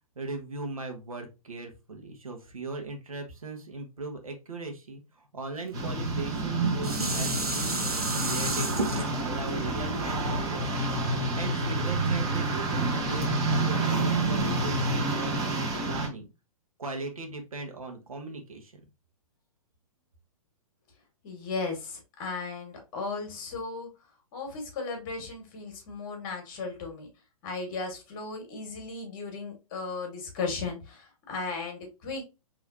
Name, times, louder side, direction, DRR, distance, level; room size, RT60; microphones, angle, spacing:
voice 1, 0.1-10.7 11.3-16.3 16.8-18.7, right 3 dB, 70° right, 3 dB, 1.3 m, -39 dB
sound 1, 5.7-16.1, right 2 dB, 20° right, 1.5 m, -28 dB
Dishes pots and pans, 6.2-11.5 12.1-12.2, right 2 dB, 85° right, 1.0 m, -32 dB
voice 2, 21.2-23.9 24.3-27.1 27.4-32.3, left 4 dB, 35° left, 3 dB, 1.7 m, -36 dB
5.2 x 3.2 x 2.7 m, 0.26 s
figure-of-eight pair, 120°, 19 cm